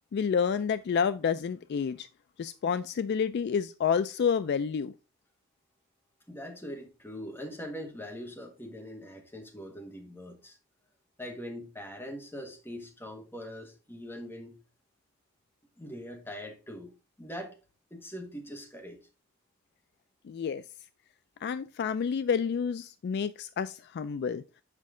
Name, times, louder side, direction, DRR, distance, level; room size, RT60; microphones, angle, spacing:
voice 1, 0.1-2.1 2.4-4.9 20.2-20.6 21.4-24.4, left 6 dB, 50° left, 0.3 m, -29 dB
voice 2, 6.3-10.6 11.2-14.6 15.8-16.9 17.2-17.6 17.9-19.0, equal, 10° left, 1.5 m, -42 dB
7.5 x 5.3 x 3.7 m
head